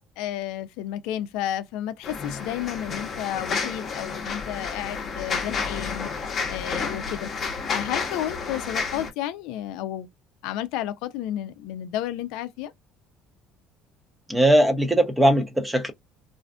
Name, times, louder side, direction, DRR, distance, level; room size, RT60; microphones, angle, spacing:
voice 1, 0.2-6.1 6.5-7.3 7.7-10.1 10.4-12.7, left 12 dB, 80° left, 0.4 m, -32 dB
sound 1, 2.0-9.1, left 5 dB, 40° left, 0.7 m, -31 dB
voice 2, 14.3-15.9, right 1 dB, 10° right, 0.6 m, -19 dB
2.5 x 2.4 x 2.3 m
cardioid pair, 110°, 0 cm